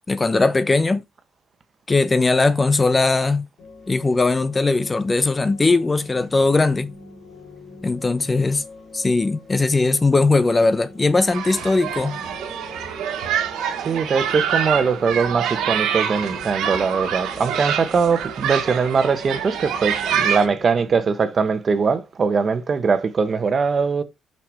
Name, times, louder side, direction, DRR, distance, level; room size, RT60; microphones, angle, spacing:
voice 1, 0.1-1.0 1.9-3.5 3.9-6.9 7.8-8.6 8.9-12.2, left 3 dB, 25° left, 0.7 m, -19 dB
sound 1, 3.6-21.0, left 3 dB, 80° left, 3.7 m, -44 dB
sound 2, 11.3-20.5, right 8 dB, 85° right, 1.7 m, -26 dB
voice 2, 13.8-24.0, right 5 dB, 45° right, 1.2 m, -21 dB
5.9 x 5.8 x 3.5 m
cardioid pair, 90°, 0 cm